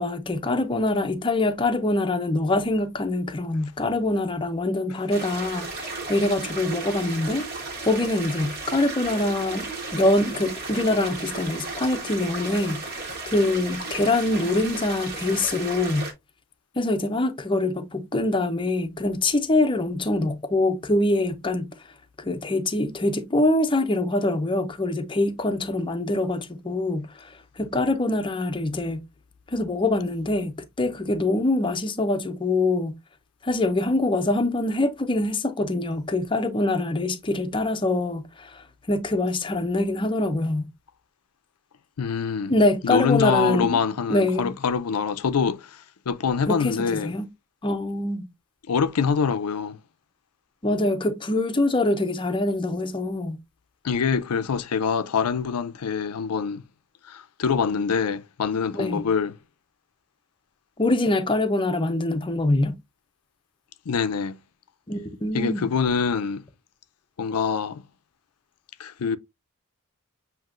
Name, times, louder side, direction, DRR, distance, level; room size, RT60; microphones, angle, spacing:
voice 1, 0.0-7.4 7.8-16.1 16.8-21.7 22.2-29.0 29.5-33.0 33.4-40.7 42.5-43.8 44.1-44.5 46.5-47.3 47.6-48.3 50.6-53.4 58.7-59.1 60.8-62.8 64.9-65.6, left 2 dB, 25° left, 0.6 m, -24 dB
sound 1, 5.1-16.1, right 3 dB, 45° right, 1.5 m, -34 dB
voice 2, 42.0-42.5 42.8-47.1 48.7-49.8 53.8-56.6 57.1-59.4 63.9-64.4 65.3-66.4 67.2-67.8 68.8-69.2, left 6 dB, 90° left, 0.5 m, -25 dB
7.3 x 2.9 x 2.4 m
head